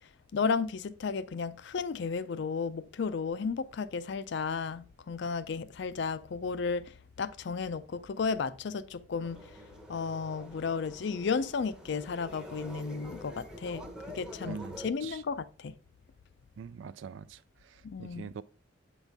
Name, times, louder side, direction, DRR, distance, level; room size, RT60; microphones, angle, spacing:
voice 1, 0.3-9.4 9.9-13.9 14.1-15.7 17.8-18.3, left 5 dB, 60° left, 0.4 m, -33 dB
sound 1, 9.2-14.9, left 1 dB, 5° right, 0.8 m, -46 dB
voice 2, 14.4-15.2 16.6-18.4, right 6 dB, 70° right, 0.3 m, -44 dB
8.1 x 4.0 x 3.5 m
head